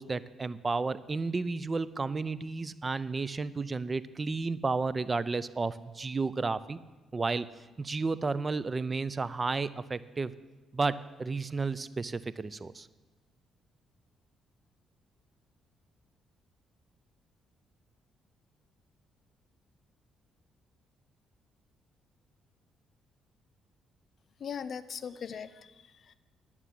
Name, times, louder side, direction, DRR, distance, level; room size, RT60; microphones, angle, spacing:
voice 1, 0.0-6.8 7.1-7.5 7.8-10.3 10.7-12.9, right 3 dB, 30° right, 17 dB, 0.5 m, -32 dB
voice 2, 24.4-26.1, left 7 dB, 55° left, 14 dB, 0.7 m, -40 dB
11.5 x 7.3 x 9.7 m, 1.2 s
cardioid pair, 90°, 0 cm